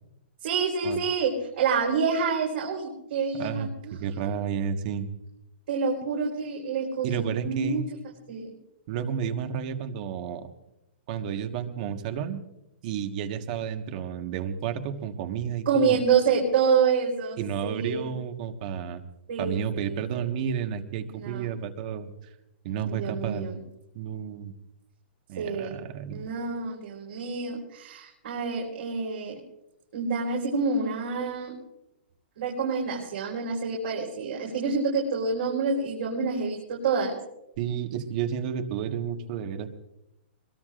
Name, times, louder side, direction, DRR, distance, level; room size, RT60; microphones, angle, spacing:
voice 1, 0.4-4.3 5.7-7.8 8.3-8.5 15.7-17.4 17.6-18.1 19.3-19.9 21.1-21.5 22.8-23.6 25.4-25.8 26.1-29.4 29.9-31.5 32.4-37.1, right 5 dB, 70° right, -2 dB, 4.3 m, -27 dB
voice 2, 3.4-3.7 4.0-5.1 7.0-7.8 8.9-10.5 11.1-12.4 12.8-16.0 17.4-19.0 19.4-22.1 22.6-23.5 23.9-24.5 25.3-26.2 37.6-39.7, right 8 dB, 45° right, 6 dB, 1.5 m, -31 dB
22.5 x 21.5 x 2.5 m, 0.86 s
hypercardioid pair, 150°, 6 cm